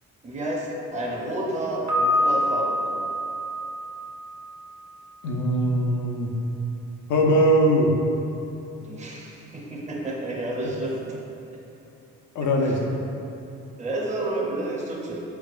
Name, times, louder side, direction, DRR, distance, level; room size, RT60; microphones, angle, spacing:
voice 1, 0.2-2.8 8.8-11.0 13.8-15.2, right 1 dB, 25° right, -3 dB, 0.7 m, -30 dB
Piano, 1.9-4.8, left 1 dB, 70° right, 1.2 m, -26 dB
voice 2, 5.2-6.3 7.1-7.9 12.3-12.8, equal, 80° left, 1 dB, 0.6 m, -21 dB
4.7 x 4.2 x 2.4 m, 2.9 s
cardioid pair, 90°, 30 cm